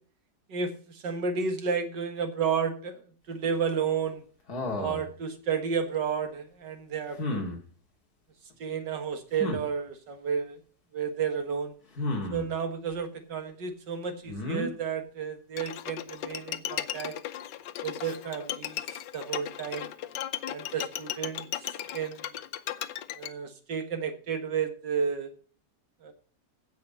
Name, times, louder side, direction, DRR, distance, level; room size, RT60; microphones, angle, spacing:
voice 1, 0.5-4.2 4.8-7.4 8.6-10.6 10.9-11.7 12.3-17.1 17.8-18.8 19.1-19.9 20.5-21.5 21.9-22.4 23.2-25.3 26.0-26.1, right 6 dB, 90° right, 7 dB, 2.3 m, -32 dB
sound 1, 4.5-5.1 7.2-7.6 9.4-9.6 12.0-12.5 14.3-14.7, left 2 dB, 60° left, 2.6 m, -32 dB
Bowed string instrument, 15.6-23.3, left 12 dB, 85° left, 1.4 m, -36 dB
16.0 x 5.4 x 5.3 m, 0.42 s
omnidirectional pair, 1.8 m